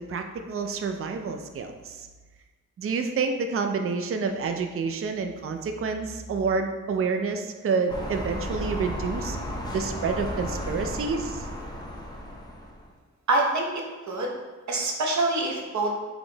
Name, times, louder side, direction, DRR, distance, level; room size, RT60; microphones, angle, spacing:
voice 1, 0.0-2.0 2.8-9.4 9.7-11.4, right 5 dB, 45° right, 6 dB, 0.4 m, -28 dB
sound 1, 7.9-12.9, equal, 15° left, 0.7 m, -34 dB
voice 2, 13.3-13.7 14.1-14.3 14.7-15.9, right 2 dB, 65° right, 0 dB, 0.8 m, -25 dB
3.9 x 3.0 x 3.8 m, 1.3 s
wide cardioid pair, 90°, 30 cm